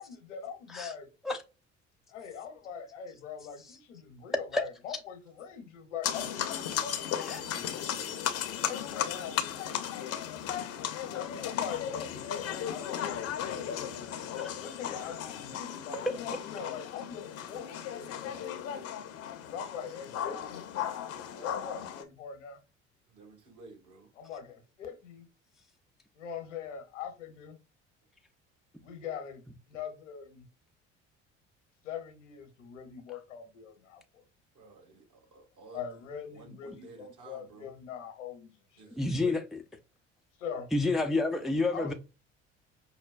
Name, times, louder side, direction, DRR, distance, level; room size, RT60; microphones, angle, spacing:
voice 1, 0.0-1.1 2.1-7.7 8.6-13.7 14.6-18.3 19.5-20.7 21.4-22.6 24.2-25.3 26.1-27.6 28.8-30.5 31.8-34.2 35.7-39.0 40.4-40.7 41.7-41.9, left 7 dB, 75° left, 0.9 m, -42 dB
sound 1, 6.0-22.0, left 9 dB, 45° left, 0.7 m, -36 dB
voice 2, 7.1-8.3 18.2-19.0 23.1-24.1 34.5-35.8 36.3-37.7 38.7-39.4, right 3 dB, 55° right, 2.0 m, -53 dB
voice 3, 39.0-39.6 40.7-41.9, left 2 dB, ahead, 0.4 m, -29 dB
5.4 x 2.1 x 2.4 m
figure-of-eight pair, 60°, 36 cm